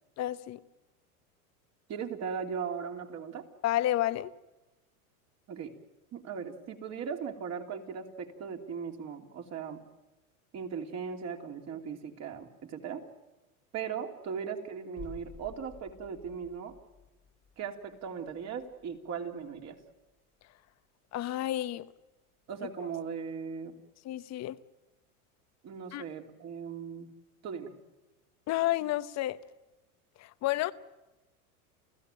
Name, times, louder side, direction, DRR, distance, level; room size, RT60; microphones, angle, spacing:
voice 1, 0.2-0.6 3.6-4.3 21.1-21.9 24.0-24.6 25.9-26.0 28.5-29.4 30.2-30.7, left 14 dB, 35° left, 1.0 m, -30 dB
voice 2, 1.9-3.5 5.5-5.7 6.1-9.8 10.5-13.0 13.7-16.7 17.6-19.8 22.5-23.7 25.6-27.1 27.4-27.7, right 6 dB, 35° right, 3.1 m, -38 dB
sound 1, 15.0-20.7 21.0-21.1, left 5 dB, 15° left, 1.4 m, -53 dB
29.5 x 15.5 x 9.1 m
supercardioid pair, 120°, 45 cm